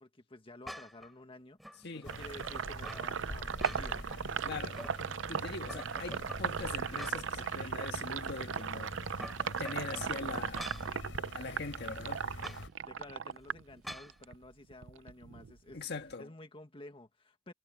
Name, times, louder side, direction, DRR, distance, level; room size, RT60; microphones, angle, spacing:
voice 1, 0.0-4.0 12.9-15.8 16.2-17.5, left 2 dB, 30° left, 1.7 m, -52 dB
sound 1, 0.6-1.1 1.6-3.1 3.5-4.2 4.5-5.3 5.7-7.4 7.8-7.9 8.9-10.9 12.4-12.6 13.8-14.1, equal, ahead, 3.3 m, -47 dB
sound 2, 2.0-12.7, left 1 dB, 80° left, 4.5 m, -46 dB
Sink (filling or washing), 2.1-14.4 14.7-16.1, right 7 dB, 80° right, 0.6 m, -38 dB
voice 2, 4.4-4.8 5.3-8.9 9.6-10.7 11.3-12.3 15.7-16.3, left 3 dB, 60° left, 1.7 m, -41 dB
head